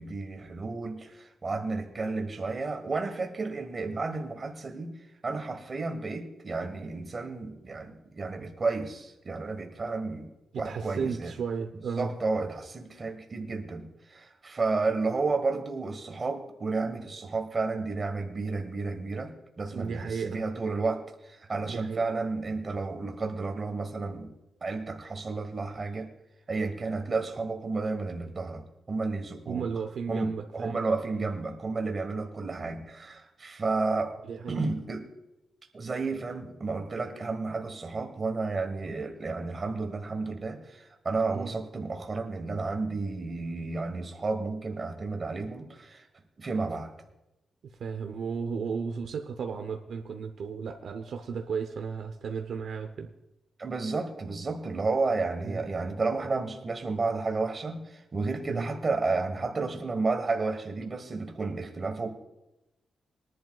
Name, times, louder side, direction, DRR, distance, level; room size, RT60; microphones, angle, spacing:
voice 1, 0.0-4.9 5.2-10.3 10.6-11.3 12.0-24.3 24.6-26.1 26.5-29.6 30.1-34.2 34.5-35.1 35.7-46.0 46.4-46.9 53.6-62.1, right 3 dB, 25° right, 6 dB, 1.2 m, -32 dB
voice 2, 10.5-12.1 19.7-20.4 21.7-22.0 29.5-30.8 31.1-31.3 34.3-34.7 41.3-41.5 47.8-53.1 55.4-55.6 58.5-58.7, right 5 dB, 60° right, 5 dB, 0.7 m, -34 dB
22.0 x 11.0 x 2.3 m, 0.94 s
wide cardioid pair, 180°, 0 cm